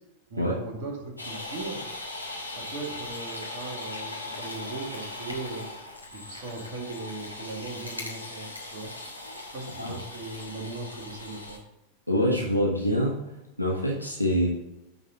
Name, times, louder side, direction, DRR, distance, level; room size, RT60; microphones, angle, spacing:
voice 1, 0.3-1.9 2.5-5.7 6.1-8.9 9.4-11.6, right 3 dB, 45° right, 1 dB, 1.9 m, -38 dB
sound 1, 1.2-11.6, left 2 dB, 90° left, 1.5 m, -39 dB
voice 2, 12.1-13.2 13.6-14.5, equal, 90° right, -2 dB, 1.2 m, -25 dB
10.5 x 4.2 x 3.8 m, 0.94 s
figure-of-eight pair, 90°, 0 cm